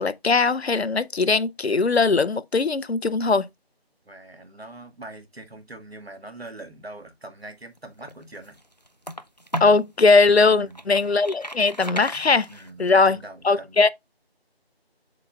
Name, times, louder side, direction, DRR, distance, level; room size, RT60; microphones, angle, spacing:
voice 1, 0.0-3.5 9.6-12.5 12.8-13.2 13.4-13.9, left 4 dB, 80° left, 0.7 m, -20 dB
voice 2, 4.1-8.6 10.3-10.8 12.1-13.9, right 2 dB, 70° right, 2.0 m, -43 dB
sound 1, 7.8-9.9 10.4-12.9, equal, 45° left, 0.4 m, -36 dB
7.8 x 5.7 x 2.3 m
figure-of-eight pair, 175°, 31 cm